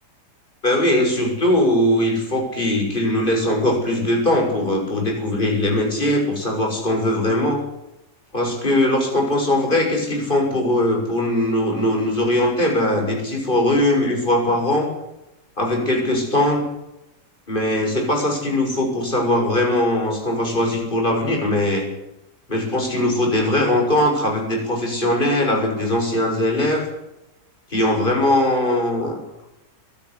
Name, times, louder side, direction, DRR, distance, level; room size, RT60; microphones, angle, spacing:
voice 1, 0.6-7.6 8.3-14.9 15.6-16.6 17.5-21.9 22.5-26.8 27.7-29.2, left 1 dB, 30° left, 1 dB, 6.8 m, -20 dB
24.5 x 13.0 x 9.9 m, 0.89 s
omnidirectional pair, 1.8 m